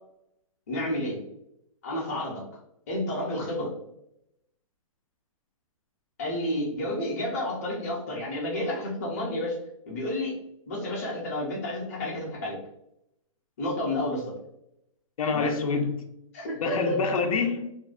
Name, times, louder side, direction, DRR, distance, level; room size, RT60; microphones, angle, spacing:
voice 1, 0.7-1.2 1.8-2.4 2.9-3.7 6.2-9.6 9.9-10.4 10.7-12.6 13.6-14.3 15.3-15.5 16.3-17.0, left 1 dB, 25° left, -4 dB, 0.6 m, -30 dB
voice 2, 15.2-16.1 16.6-17.7, left 4 dB, 90° left, 4 dB, 0.5 m, -26 dB
2.5 x 2.1 x 2.3 m, 0.80 s
hypercardioid pair, 180°, 17 cm